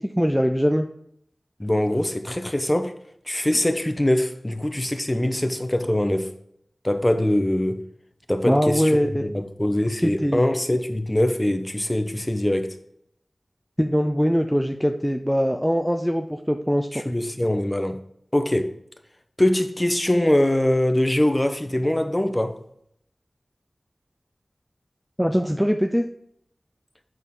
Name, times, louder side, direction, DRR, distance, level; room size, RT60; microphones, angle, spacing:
voice 1, 0.2-0.9 8.5-9.2 10.0-10.4 13.8-16.9 25.2-26.0, equal, ahead, 0.5 m, -22 dB
voice 2, 1.6-2.9 3.3-6.3 6.8-7.8 8.3-12.8 16.9-18.0 18.3-18.7 19.4-22.6, left 1 dB, 20° left, 1.0 m, -23 dB
8.1 x 6.2 x 3.8 m
wide cardioid pair, 65°, 0 cm